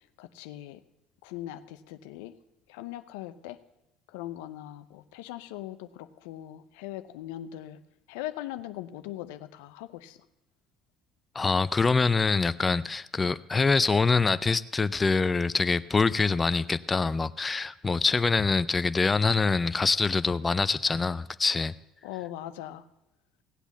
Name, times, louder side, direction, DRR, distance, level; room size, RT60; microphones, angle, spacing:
voice 1, 0.2-0.8 1.2-2.3 2.7-3.6 4.1-7.8 8.1-10.2 22.0-22.8, left 13 dB, 80° left, 11 dB, 0.6 m, -40 dB
voice 2, 11.3-21.7, left 4 dB, 25° left, 14 dB, 0.5 m, -25 dB
17.0 x 8.1 x 7.0 m, 0.85 s
hypercardioid pair, 75°, 0 cm